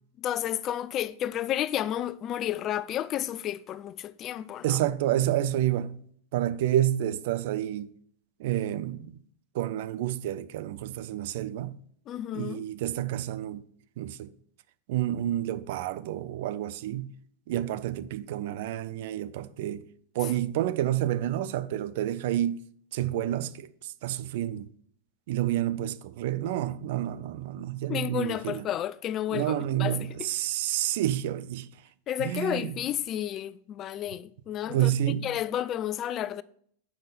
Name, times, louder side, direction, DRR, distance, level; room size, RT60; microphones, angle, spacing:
voice 1, 0.2-4.8 12.1-12.6 27.9-29.5 29.8-30.3 32.1-34.9 35.2-36.4, left 11 dB, 35° left, 0.3 m, -31 dB
voice 2, 4.6-6.0 6.3-7.9 8.4-9.1 9.5-11.8 12.3-13.6 14.0-14.3 14.9-17.1 17.5-19.8 20.1-22.6 22.9-24.7 25.3-28.7 29.3-31.7 32.2-32.7 34.7-35.3, right 12 dB, 60° right, 0.4 m, -29 dB
7.1 x 5.5 x 5.0 m
figure-of-eight pair, 90°, 0 cm